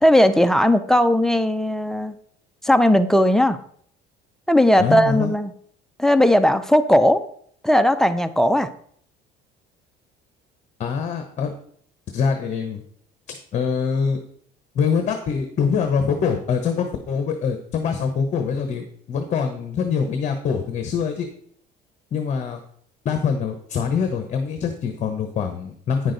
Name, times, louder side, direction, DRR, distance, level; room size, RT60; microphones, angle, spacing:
voice 1, 0.0-2.2 2.6-3.6 4.5-5.5 6.0-7.3 7.6-8.7, equal, ahead, 11 dB, 0.4 m, -17 dB
voice 2, 4.8-5.3 10.8-11.5 12.1-12.8 13.3-14.2 14.7-21.3 22.1-22.6 23.0-26.1, left 6 dB, 40° left, 6 dB, 0.9 m, -24 dB
9.5 x 6.2 x 3.9 m, 0.62 s
cardioid pair, 145°, 19 cm